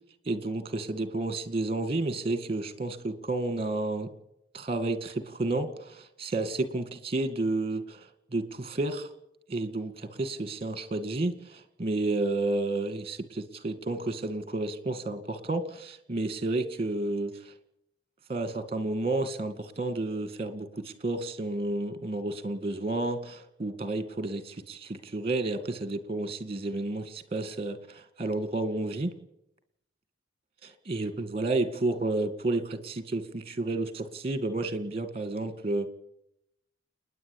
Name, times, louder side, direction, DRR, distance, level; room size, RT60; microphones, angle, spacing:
voice 1, 0.3-4.1 4.5-9.1 9.5-17.5 18.3-29.1 30.6-35.9, right 2 dB, 30° right, 11 dB, 2.1 m, -31 dB
29.5 x 10.0 x 8.7 m, 0.82 s
head